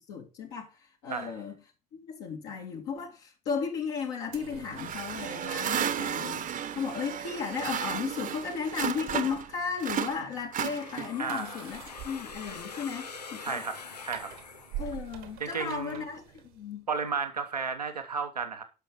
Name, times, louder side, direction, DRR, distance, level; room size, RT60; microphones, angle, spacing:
voice 1, 0.0-1.6 1.9-13.6 14.8-16.9, left 6 dB, 60° left, 2.4 m, -35 dB
sound 1, 4.3-16.8, right 12 dB, 65° right, 1.4 m, -47 dB
sound 2, 4.8-9.5 9.8-11.3, right 9 dB, 40° right, 1.1 m, -33 dB
sound 3, 10.5-15.4, left 5 dB, 85° left, 0.6 m, -44 dB
voice 2, 11.2-11.6 13.4-14.3 15.4-16.0 16.9-18.6, right 5 dB, 85° right, 1.1 m, -33 dB
13.0 x 5.8 x 5.5 m
figure-of-eight pair, 50°, 20 cm